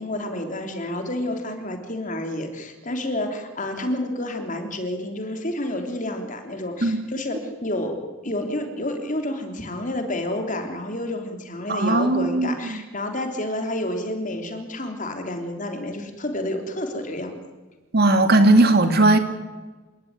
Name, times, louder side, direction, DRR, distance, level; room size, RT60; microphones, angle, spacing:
voice 1, 0.0-17.3, left 1 dB, 40° left, 5 dB, 3.4 m, -29 dB
voice 2, 11.7-12.8 17.9-19.2, right 2 dB, 50° right, 8 dB, 2.4 m, -17 dB
28.0 x 18.5 x 9.6 m, 1.3 s
head